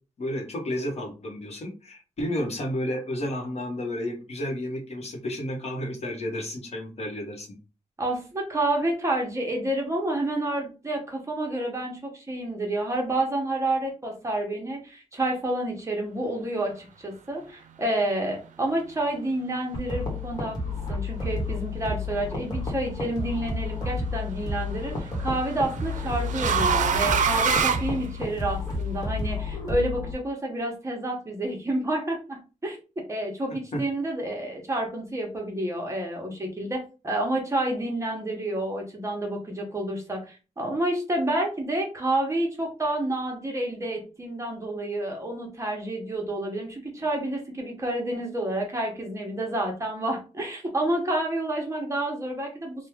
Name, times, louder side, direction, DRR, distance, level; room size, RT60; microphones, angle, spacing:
voice 1, 0.2-7.6 33.7-33.8, left 1 dB, 60° left, 1 dB, 1.0 m, -31 dB
voice 2, 8.0-32.8 33.1-36.8 37.0-52.9, right 1 dB, 25° right, 0 dB, 0.9 m, -29 dB
sound 1, 19.7-30.1, left 3 dB, 30° left, 1.2 m, -31 dB
sound 2, 22.7-23.2 24.6-28.6, right 7 dB, 90° right, 0.4 m, -26 dB
3.0 x 2.3 x 3.5 m, 0.32 s
wide cardioid pair, 150°, 13 cm